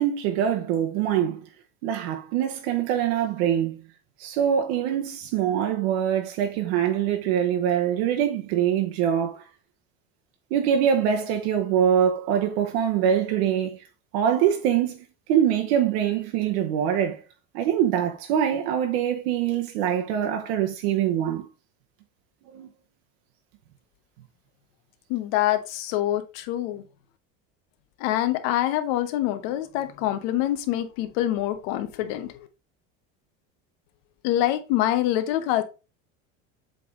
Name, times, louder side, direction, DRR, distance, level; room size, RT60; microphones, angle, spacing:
voice 1, 0.0-1.4 1.8-3.8 4.2-9.4 10.5-13.8 14.1-15.0 15.3-17.2 17.5-21.4 22.5-22.7, right 9 dB, 70° right, 1.1 m, -24 dB
voice 2, 25.1-26.8 28.0-32.5 34.2-35.6, left 13 dB, 65° left, 1.0 m, -25 dB
7.6 x 3.7 x 3.7 m
cardioid pair, 165°, 32 cm